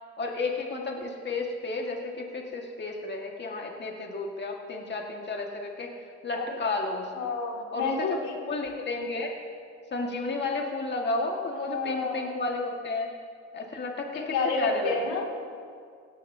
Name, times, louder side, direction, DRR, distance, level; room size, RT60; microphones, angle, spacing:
voice 1, 0.2-5.9 6.2-7.1 7.7-8.1 8.4-9.3 9.9-13.1 13.5-15.1, left 3 dB, 35° left, 1 dB, 1.8 m, -32 dB
voice 2, 7.2-8.3 11.6-12.3 14.1-15.3, left 4 dB, 85° left, -1 dB, 2.5 m, -30 dB
18.0 x 16.5 x 2.8 m, 2.2 s
cardioid pair, 90°, 30 cm